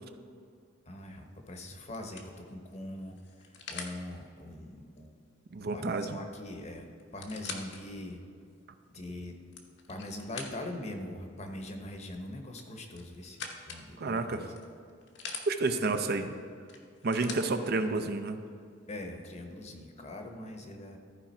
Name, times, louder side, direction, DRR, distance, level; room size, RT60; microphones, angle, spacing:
voice 1, 0.9-3.2 3.7-5.2 5.7-8.2 8.9-9.3 9.9-13.4 13.6-14.5 18.9-21.0, left 1 dB, 35° left, 4 dB, 0.9 m, -42 dB
sound 1, 1.0-1.3 1.9-4.0 6.0-6.1 6.4-6.5 7.0-7.8 8.4-8.5 9.3-10.9 12.5-13.9 14.5-15.5 16.7-17.5 18.5-18.6, left 5 dB, 60° left, 1.0 m, -44 dB
voice 2, 5.5-6.2 14.0-14.5 15.5-16.3 17.0-18.4, right 3 dB, 55° right, 8 dB, 0.5 m, -30 dB
14.0 x 4.8 x 4.3 m, 2.2 s
head